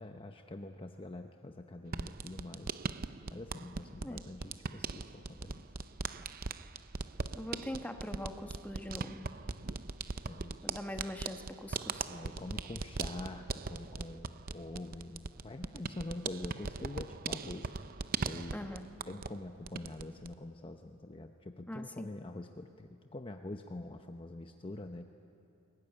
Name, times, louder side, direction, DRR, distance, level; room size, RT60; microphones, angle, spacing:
voice 1, 0.0-2.8 3.3-5.6 10.3-10.7 12.1-17.7 18.2-18.6 19.1-25.1, left 2 dB, 25° left, 6 dB, 0.7 m, -45 dB
sound 1, 1.9-19.4 19.7-20.3, right 4 dB, 45° right, 0.6 m, -40 dB
voice 2, 7.3-9.3 10.6-12.1 18.5-18.9 21.7-22.1, left 1 dB, 5° left, 6 dB, 1.2 m, -42 dB
23.0 x 19.5 x 9.8 m, 2.7 s
head